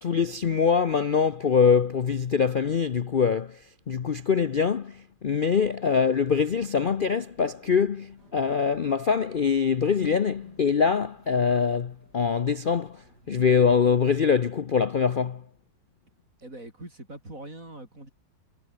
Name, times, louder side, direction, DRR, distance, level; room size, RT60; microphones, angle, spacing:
voice 1, 0.0-15.4, left 6 dB, 75° left, 0.4 m, -24 dB
sound 1, 5.8-13.8, right 2 dB, 60° right, 6.0 m, -59 dB
voice 2, 16.4-18.1, right 1 dB, 45° right, 8.5 m, -42 dB
omnidirectional pair, 2.0 m